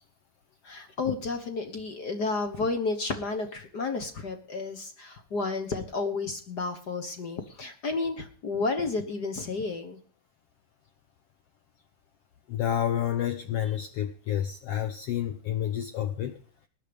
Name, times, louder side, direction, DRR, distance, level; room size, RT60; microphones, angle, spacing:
voice 1, 0.6-10.0, left 3 dB, 55° left, 7 dB, 1.1 m, -31 dB
voice 2, 12.5-16.4, left 10 dB, 90° left, 9 dB, 1.3 m, -29 dB
19.5 x 10.0 x 5.3 m, 0.42 s
omnidirectional pair, 3.8 m